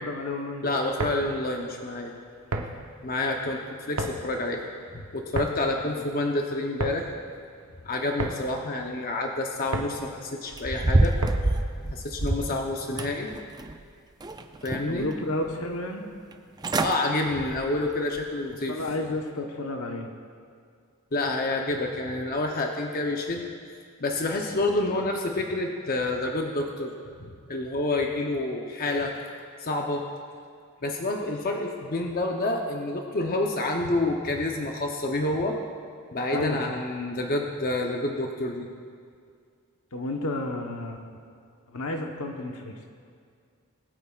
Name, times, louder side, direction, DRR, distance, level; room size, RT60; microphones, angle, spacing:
voice 1, 0.0-0.6 2.5-2.6 5.9-6.0 14.9-16.0 18.7-20.1 36.3-36.7 39.9-41.0 41.7-42.9, left 2 dB, 75° left, 3 dB, 1.1 m, -31 dB
voice 2, 0.6-2.1 3.0-3.6 3.9-4.6 5.1-7.1 7.8-11.2 11.8-13.3 14.6-15.1 16.8-18.7 21.1-23.5 24.0-29.2 29.6-30.1 30.8-35.6 36.1-38.7, left 2 dB, 40° left, 1 dB, 0.7 m, -28 dB
sound 1, 0.8-11.7, right 2 dB, 75° right, 0.9 m, -36 dB
Extremely Creaky Door, 10.5-12.5 13.0-13.8 14.2-15.1 15.5-15.6 16.3-16.4 16.6-17.0 17.4-17.7 18.2-18.3, right 2 dB, 20° right, 0.4 m, -26 dB
20.5 x 9.0 x 2.4 m, 2.2 s
head